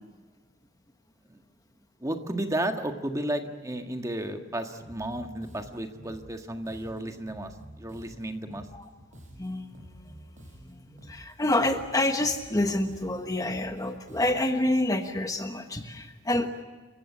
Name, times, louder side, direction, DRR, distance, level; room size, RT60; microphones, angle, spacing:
voice 1, 2.0-8.7, right 1 dB, 15° right, 5 dB, 1.7 m, -33 dB
Bass guitar, 4.8-14.7, equal, 40° right, 6.2 m, -49 dB
voice 2, 9.4-9.7 10.7-16.5, left 1 dB, 20° left, 6 dB, 1.3 m, -28 dB
28.5 x 16.0 x 9.9 m, 1.3 s
head